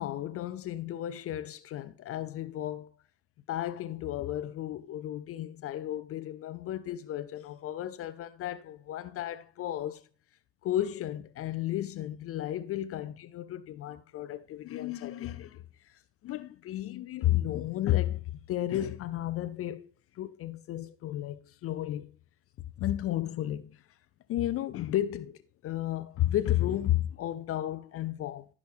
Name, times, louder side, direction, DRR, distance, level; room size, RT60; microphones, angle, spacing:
voice 1, 0.0-2.9 3.5-10.0 10.6-15.9 16.2-18.2 18.5-19.9 20.2-22.1 22.8-23.8 24.3-28.5, left 13 dB, 30° left, 0.6 m, -33 dB
14.5 x 6.2 x 3.5 m
figure-of-eight pair, 70°, 47 cm